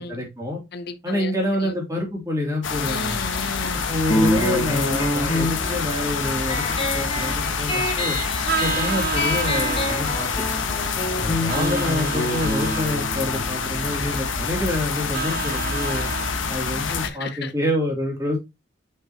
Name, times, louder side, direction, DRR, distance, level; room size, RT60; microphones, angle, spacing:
voice 1, 0.0-0.6 1.0-3.2 3.9-8.2 8.6-10.3 11.2-16.1 16.5-18.4, left 1 dB, 15° right, 2.9 m, -27 dB
voice 2, 0.7-1.8 2.8-3.8 16.9-17.5, left 4 dB, 55° left, 0.8 m, -34 dB
sound 1, 2.6-17.1, left 5 dB, 90° left, 1.1 m, -27 dB
sound 2, 4.1-15.2, left 1 dB, 30° left, 1.6 m, -27 dB
Vehicle horn car horn honking, 8.5-10.0 11.5-13.0 15.1-16.3, right 6 dB, 50° right, 0.6 m, -30 dB
6.0 x 5.8 x 2.9 m
head